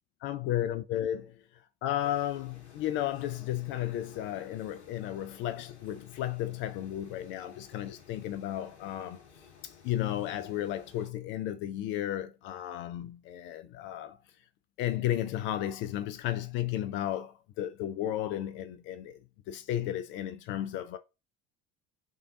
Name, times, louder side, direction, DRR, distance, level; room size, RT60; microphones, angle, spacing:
voice 1, 0.2-1.3 1.8-9.2 9.6-14.2 14.8-19.2 19.5-21.0, left 12 dB, 40° left, 0.4 m, -33 dB
sound 1, 2.0-11.1, left 6 dB, 85° left, 0.7 m, -56 dB
3.6 x 3.4 x 3.6 m
figure-of-eight pair, 65°, 32 cm